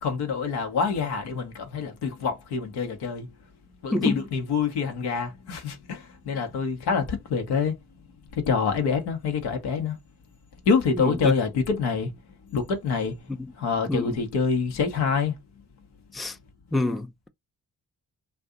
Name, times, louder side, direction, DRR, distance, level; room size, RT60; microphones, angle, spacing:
voice 1, 0.0-3.3 3.8-7.8 8.3-10.0 10.6-12.1 12.4-13.2 13.6-15.3, left 5 dB, 80° left, 0.9 m, -26 dB
voice 2, 16.7-17.3, left 2 dB, ahead, 0.4 m, -26 dB
2.6 x 2.3 x 3.6 m
hypercardioid pair, 45°, 39 cm